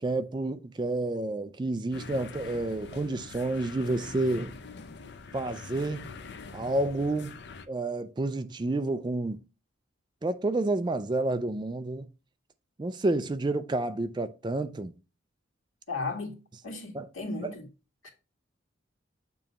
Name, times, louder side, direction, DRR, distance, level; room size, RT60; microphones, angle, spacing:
voice 1, 0.0-4.5 5.3-6.1 6.5-7.4 7.7-9.4 10.2-12.1 12.8-14.9 16.9-17.1, right 2 dB, 20° right, 0.4 m, -29 dB
sound 1, 1.9-7.7, left 4 dB, 55° left, 0.5 m, -44 dB
voice 2, 15.9-16.4 16.6-17.7 18.0-18.1, left 3 dB, 85° left, 2.0 m, -35 dB
7.0 x 2.9 x 5.3 m
head